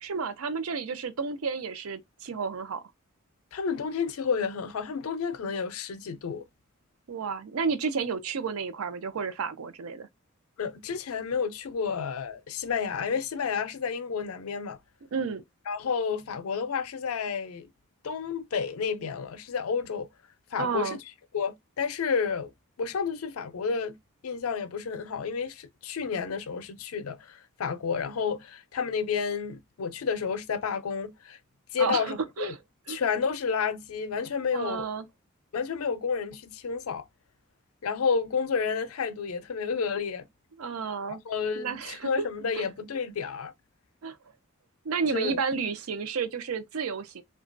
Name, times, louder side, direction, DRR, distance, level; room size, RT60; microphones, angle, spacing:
voice 1, 0.0-2.8 7.1-10.1 15.1-15.4 20.6-21.0 31.8-32.6 32.9-33.0 34.5-35.1 40.6-41.2 41.6-42.1 42.5-42.7 44.0-44.2 44.8-47.2, right 5 dB, 85° right, 0.5 m, -31 dB
voice 2, 3.5-6.5 10.6-14.8 15.7-17.7 18.0-20.1 20.5-21.0 21.3-22.5 22.8-24.0 24.2-31.4 31.7-32.5 32.9-34.9 35.5-37.1 37.8-40.3 41.3-43.5 45.1-45.4, left 6 dB, 90° left, 0.5 m, -30 dB
2.9 x 2.3 x 2.5 m
head